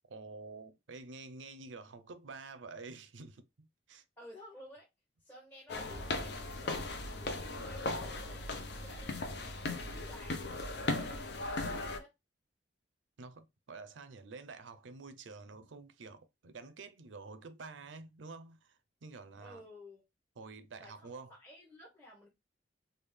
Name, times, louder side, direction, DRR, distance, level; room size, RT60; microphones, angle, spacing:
voice 1, 0.1-4.0 13.2-19.6 20.4-21.3, right 3 dB, 85° right, 0.5 m, -49 dB
voice 2, 4.2-4.9 5.2-6.9 7.2-9.2 9.6-10.6 11.5-12.1 19.4-20.0 20.8-22.3, left 1 dB, 10° left, 0.9 m, -54 dB
sound 1, 5.7-12.0, left 2 dB, 60° left, 0.6 m, -37 dB
3.4 x 2.4 x 3.2 m
head